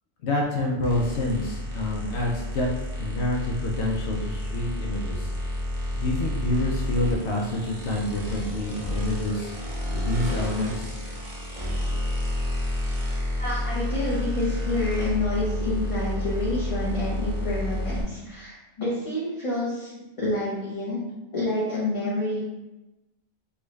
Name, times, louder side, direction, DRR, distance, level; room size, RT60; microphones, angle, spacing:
voice 1, 0.2-2.7 3.0-5.3 6.0-9.5 9.9-10.9, left 2 dB, 80° left, -1 dB, 0.9 m, -27 dB
sound 1, 0.8-18.0, left 1 dB, 35° right, 0.7 m, -30 dB
voice 2, 13.4-21.0 21.3-22.4, left 2 dB, 35° left, -8 dB, 0.7 m, -28 dB
3.8 x 2.3 x 3.1 m, 1.0 s
omnidirectional pair, 1.1 m